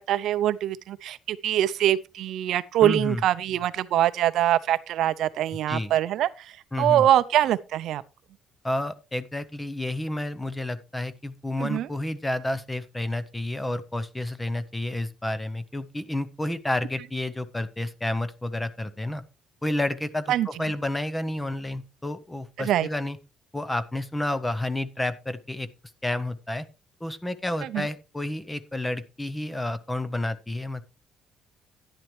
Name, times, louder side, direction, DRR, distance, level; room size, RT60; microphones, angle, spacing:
voice 1, 0.1-8.0 11.6-11.9 20.3-20.5 22.6-22.9 27.7-27.9, right 12 dB, 60° right, 0.5 m, -24 dB
voice 2, 2.8-3.2 5.7-5.9 6.7-7.1 8.6-19.2 19.6-23.2 23.5-25.7 26.0-26.7 27.0-30.8, left 1 dB, 10° left, 0.6 m, -30 dB
11.0 x 10.5 x 3.1 m
cardioid pair, 170°, 0 cm